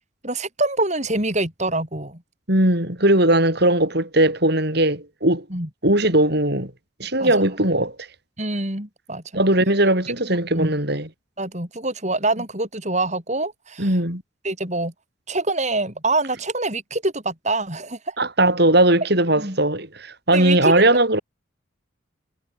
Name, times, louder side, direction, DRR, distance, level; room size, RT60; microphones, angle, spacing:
voice 1, 0.2-2.2 5.5-5.7 7.2-7.3 8.4-9.2 10.6-10.7 11.4-14.0 14.4-14.9 15.3-18.1 19.4-19.6 20.3-20.9, right 2 dB, 35° right, 7.8 m, -25 dB
voice 2, 2.5-5.4 5.8-6.7 7.0-8.1 9.3-11.1 13.8-14.2 18.2-21.2, right 1 dB, 55° right, 7.4 m, -19 dB
head